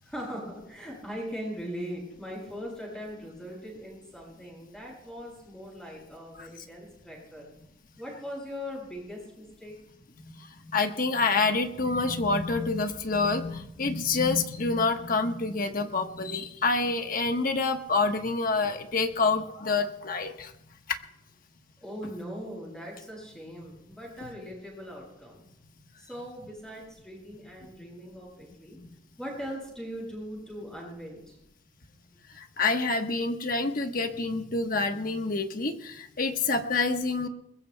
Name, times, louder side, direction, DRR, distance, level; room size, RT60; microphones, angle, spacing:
voice 1, 0.0-7.5 8.0-9.7 21.8-25.4 26.0-28.8 29.2-31.4, equal, 5° left, -2 dB, 7.6 m, -40 dB
voice 2, 10.7-20.5 20.9-21.0 32.4-37.3, left 3 dB, 50° left, 6 dB, 1.2 m, -27 dB
22.5 x 21.0 x 2.2 m, 0.81 s
head